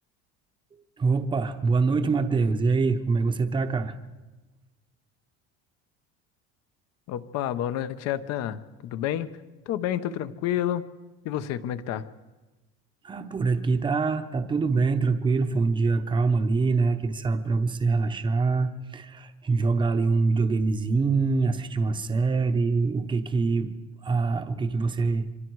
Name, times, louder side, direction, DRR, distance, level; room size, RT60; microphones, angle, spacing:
voice 1, 1.0-3.9 13.0-23.7 24.0-25.3, right 4 dB, 15° right, 8 dB, 0.9 m, -24 dB
voice 2, 7.1-9.3 9.7-10.8 11.2-12.0, left 11 dB, 55° left, 12 dB, 1.0 m, -29 dB
26.5 x 24.5 x 4.7 m, 1.2 s
cardioid pair, 160°, 31 cm